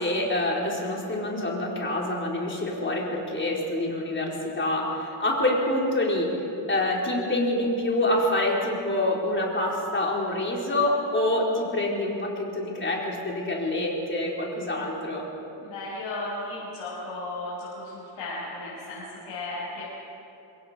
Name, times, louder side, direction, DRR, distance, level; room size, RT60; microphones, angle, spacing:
voice 1, 0.0-6.3 6.7-15.3, left 1 dB, 25° left, -2 dB, 4.3 m, -26 dB
voice 2, 15.6-19.9, left 2 dB, 85° left, -8 dB, 6.5 m, -35 dB
26.5 x 21.5 x 5.1 m, 2.9 s
cardioid pair, 125°, 47 cm